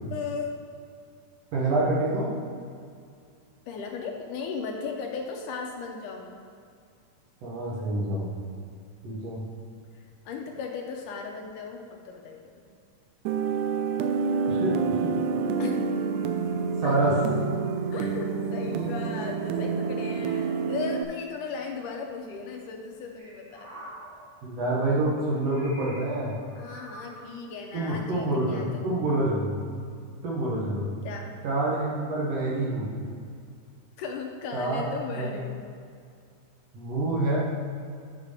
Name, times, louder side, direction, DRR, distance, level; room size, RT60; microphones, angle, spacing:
voice 1, 0.1-0.5 3.7-6.4 10.3-12.6 15.6-15.8 16.8-17.0 17.9-23.9 26.6-28.9 31.0-31.3 34.0-35.6, left 5 dB, 80° left, 2 dB, 2.1 m, -36 dB
voice 2, 1.5-2.3 7.4-8.3 9.0-9.4 14.5-15.2 15.6-16.0 16.8-17.2 24.4-26.4 27.7-29.6 30.2-30.9 31.4-32.9 34.5-34.8 35.1-35.3 36.7-37.4, right 2 dB, 60° right, -5 dB, 2.1 m, -27 dB
sound 1, 13.2-21.0, right 5 dB, 90° right, 1.6 m, -28 dB
sound 2, 23.2-24.6 25.3-27.4 28.2-28.5, right 1 dB, 45° right, 2.4 m, -47 dB
8.9 x 4.8 x 4.9 m, 2.3 s
omnidirectional pair, 3.9 m